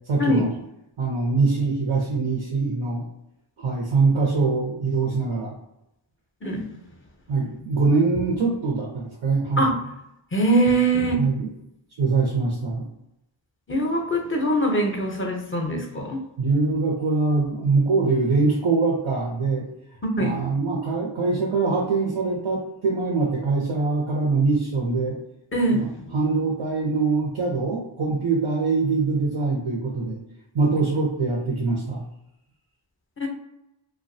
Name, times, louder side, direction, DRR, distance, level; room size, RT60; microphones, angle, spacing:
voice 1, 0.1-0.5 1.0-3.0 3.6-5.5 7.3-9.7 11.2-11.5 12.0-12.9 16.4-19.7 20.2-25.2 25.7-25.9 26.1-30.2 30.5-32.1, right 4 dB, 80° right, -3 dB, 0.7 m, -23 dB
voice 2, 10.3-11.2 13.7-16.2 20.0-20.4 25.5-25.9 33.2-33.3, right 1 dB, 25° left, 2 dB, 0.6 m, -22 dB
2.4 x 2.2 x 2.6 m, 0.85 s
wide cardioid pair, 40°, 49 cm